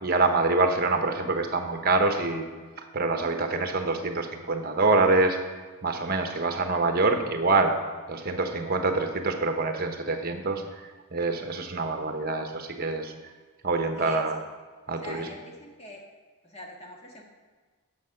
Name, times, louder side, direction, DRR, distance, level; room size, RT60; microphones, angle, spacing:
voice 1, 0.0-2.5 2.9-5.4 5.8-7.7 8.1-10.6 11.1-13.1 13.6-14.4 14.9-15.2, right 3 dB, 40° right, 5 dB, 0.9 m, -25 dB
voice 2, 13.9-14.3 15.0-16.0 16.4-17.2, equal, 25° left, 0 dB, 1.4 m, -42 dB
10.0 x 6.8 x 5.7 m, 1.4 s
head